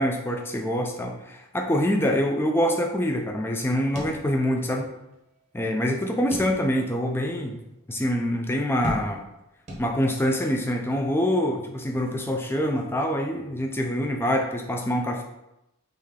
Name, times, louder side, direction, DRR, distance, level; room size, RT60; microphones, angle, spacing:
voice 1, 0.0-4.9 5.5-7.6 7.9-9.2 9.8-15.2, equal, 10° left, 2 dB, 0.3 m, -25 dB
sound 1, 3.9-4.8 5.1-5.2 6.3-7.0 7.5-7.6 8.8-9.4 9.7-10.3, equal, 30° right, 0.7 m, -36 dB
3.3 x 2.7 x 3.6 m, 0.88 s
head